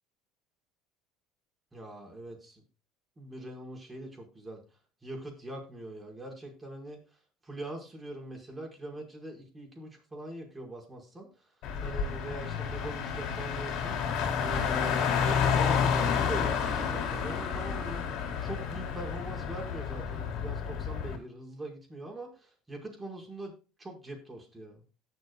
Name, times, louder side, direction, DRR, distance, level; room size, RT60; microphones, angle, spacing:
voice 1, 1.7-2.6 3.2-4.6 5.0-7.0 7.4-11.3 11.8-13.9 14.4-18.0 18.4-23.5 23.8-24.8, right 1 dB, 15° right, 1 dB, 5.3 m, -42 dB
Car, 11.6-21.2, left 7 dB, 60° left, 3.3 m, -30 dB
18.0 x 6.8 x 2.4 m, 0.33 s
supercardioid pair, 95°, 0 cm